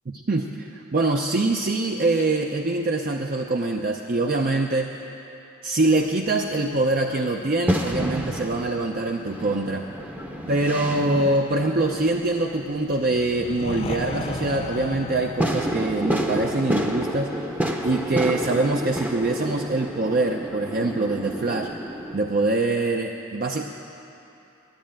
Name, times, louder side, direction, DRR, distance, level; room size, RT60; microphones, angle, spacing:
voice 1, 0.3-4.9 5.6-9.9 10.5-17.4 17.8-21.7 22.1-23.6, right 2 dB, 45° right, 2 dB, 0.5 m, -24 dB
sound 1, 5.9-22.2, equal, 10° right, 0.7 m, -30 dB
sound 2, 12.8-18.6, left 3 dB, 30° left, 0.4 m, -36 dB
11.5 x 10.5 x 8.7 m, 2.8 s
head